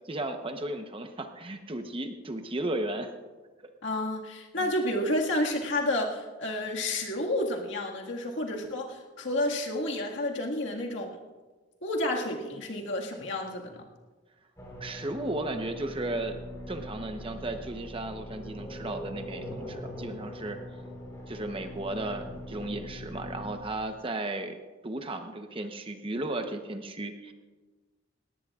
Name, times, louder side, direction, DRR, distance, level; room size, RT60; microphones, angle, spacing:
voice 1, 0.1-3.1 4.6-4.7 14.8-16.4 16.7-20.6 21.3-24.6 24.8-27.3, right 2 dB, 30° right, 6 dB, 0.9 m, -35 dB
voice 2, 3.8-11.1 11.8-13.8, left 1 dB, 65° left, 0 dB, 1.9 m, -30 dB
sound 1, 14.6-23.5, equal, 15° left, 4.2 m, -42 dB
18.5 x 18.0 x 2.4 m, 1.3 s
head